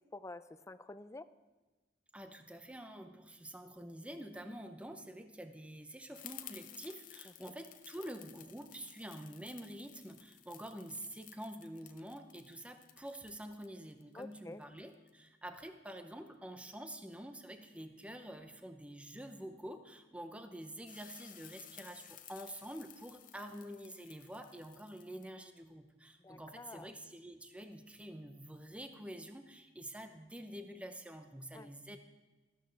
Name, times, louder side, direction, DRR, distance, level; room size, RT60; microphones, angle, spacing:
voice 1, 0.1-1.3 7.4-7.5 14.1-14.6 26.2-26.9 31.5-31.7, left 2 dB, 15° left, 13 dB, 0.4 m, -49 dB
voice 2, 2.1-32.0, right 1 dB, 5° right, 7 dB, 0.7 m, -47 dB
sound 1, 6.1-15.1 20.9-25.3, left 11 dB, 45° left, 0.7 m, -55 dB
14.0 x 12.5 x 3.4 m, 1.2 s
head